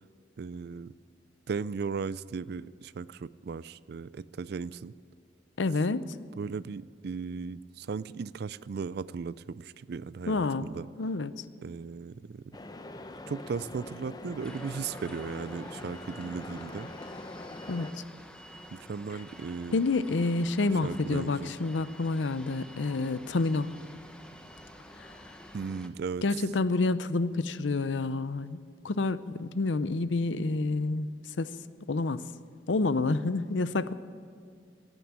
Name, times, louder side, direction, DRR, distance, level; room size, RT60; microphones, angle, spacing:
voice 1, 0.4-0.9 1.5-4.9 6.4-10.9 11.6-12.6 13.3-16.9 18.7-19.8 20.8-21.5 25.5-26.2, right 5 dB, 60° right, 17 dB, 0.4 m, -36 dB
voice 2, 5.6-6.0 10.3-10.7 11.0-11.3 17.7-18.0 19.7-23.7 25.0-25.1 26.2-28.6 28.8-31.1 31.4-31.5 31.9-32.2 32.7-33.9, left 3 dB, 85° left, 15 dB, 0.6 m, -28 dB
sound 1, 12.5-17.9, left 2 dB, 20° left, 0.7 m, -43 dB
sound 2, 14.4-25.9, equal, 5° left, 1.0 m, -49 dB
17.5 x 9.2 x 8.7 m, 2.2 s
head